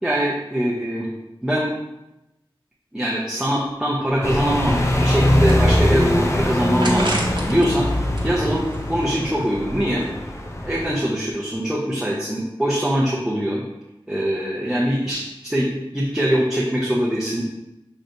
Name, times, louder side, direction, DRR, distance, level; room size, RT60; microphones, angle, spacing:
voice 1, 0.0-1.1 1.4-1.7 2.9-10.0 10.6-13.6 14.1-17.4, equal, 5° right, -5 dB, 0.8 m, -23 dB
sound 1, 4.2-10.9, left 1 dB, 30° left, 0.6 m, -21 dB
sound 2, 5.3-6.1 6.8-7.7 8.0-9.3, right 1 dB, 55° right, 0.9 m, -31 dB
6.3 x 3.1 x 2.7 m, 0.93 s
wide cardioid pair, 40°, 9 cm